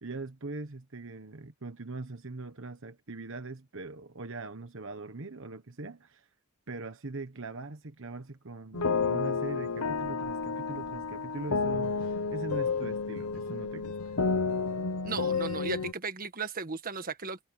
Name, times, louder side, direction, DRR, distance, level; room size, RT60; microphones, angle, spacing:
voice 1, 0.0-6.3 6.7-14.1, right 3 dB, 60° right, 1.2 m, -41 dB
sound 1, 8.7-15.9, left 4 dB, 85° left, 1.3 m, -31 dB
voice 2, 15.0-17.4, right 4 dB, 40° right, 1.6 m, -35 dB
head